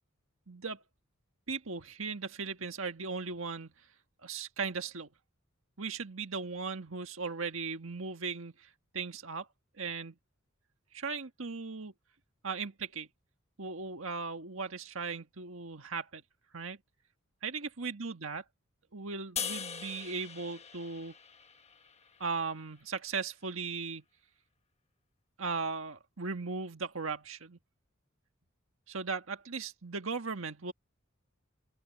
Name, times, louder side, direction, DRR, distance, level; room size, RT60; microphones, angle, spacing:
voice 1, 0.5-0.8 1.5-3.7 4.2-5.1 5.8-9.5 9.8-10.1 10.9-11.9 12.4-13.1 13.6-16.2 16.5-16.8 17.4-18.4 18.9-21.1 22.2-24.0 25.4-27.6 28.9-30.7, right 4 dB, 70° right, 1.8 m, -37 dB
sound 1, 19.4-22.6, left 7 dB, 30° left, 1.3 m, -41 dB
open air
head